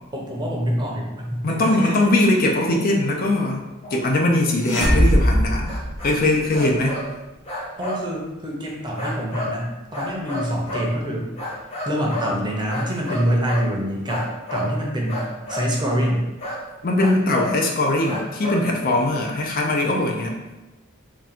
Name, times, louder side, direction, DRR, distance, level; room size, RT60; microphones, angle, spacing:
voice 1, 0.1-2.0 7.8-11.3 11.8-16.3, equal, 20° right, -1 dB, 0.7 m, -25 dB
voice 2, 1.4-3.6 3.9-5.8 6.0-7.0 16.8-20.3, left 1 dB, 45° left, 1 dB, 0.5 m, -21 dB
sound 1, 1.6-2.1 2.6-2.8 3.8-4.0 5.6-6.2 6.5-7.1 7.5-8.1 9.0-9.6 9.9-10.9 11.4-12.3 12.7-13.7 14.1-14.8 15.1-15.7 16.4-16.6 17.0-17.6 18.0-18.7, left 1 dB, 30° left, 0.9 m, -30 dB
sound 2, 4.6-6.6, equal, 65° left, 1.4 m, -20 dB
3.7 x 2.4 x 4.3 m, 1.1 s
head